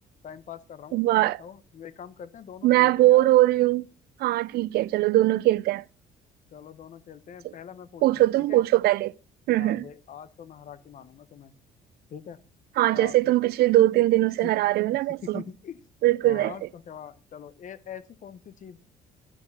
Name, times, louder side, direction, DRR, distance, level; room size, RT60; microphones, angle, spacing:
voice 1, 0.2-3.2 6.5-8.6 9.6-11.5 12.1-12.4 12.9-13.2 14.4-14.5 15.2-15.8 16.2-18.8, left 8 dB, 50° left, 1.0 m, -43 dB
voice 2, 0.9-1.4 2.6-3.9 4.2-5.8 7.4-7.5 8.0-9.1 9.5-9.9 12.8-15.4 16.0-16.5, right 16 dB, 70° right, 0.4 m, -21 dB
12.0 x 5.0 x 8.0 m
cardioid pair, 110°, 17 cm